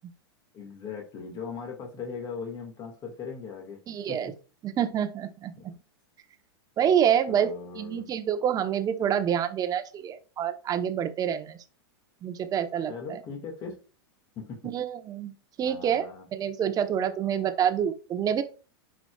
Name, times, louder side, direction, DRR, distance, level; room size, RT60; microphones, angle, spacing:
voice 1, 0.5-3.8 4.1-4.4 5.5-5.8 7.3-8.1 12.9-13.8 14.4-14.7 15.6-16.3, left 5 dB, 35° left, 1 dB, 1.9 m, -39 dB
voice 2, 3.9-4.3 4.6-5.5 6.8-7.5 7.8-11.6 12.2-12.9 14.7-15.3 15.6-16.0 16.3-18.4, right 9 dB, 30° right, 9 dB, 1.0 m, -27 dB
11.0 x 5.0 x 2.4 m, 0.36 s
hypercardioid pair, 115°, 13 cm